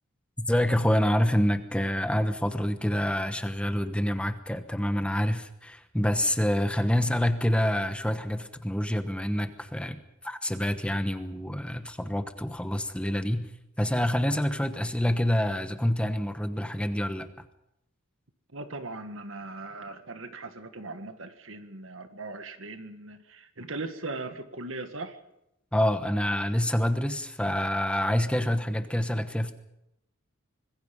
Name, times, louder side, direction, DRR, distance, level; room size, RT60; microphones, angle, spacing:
voice 1, 0.5-10.0 10.2-13.5 13.8-17.3 25.7-29.6, equal, 5° left, 9 dB, 1.1 m, -27 dB
voice 2, 18.5-25.2, right 2 dB, 70° right, 8 dB, 1.9 m, -39 dB
25.5 x 21.0 x 5.4 m, 0.84 s
head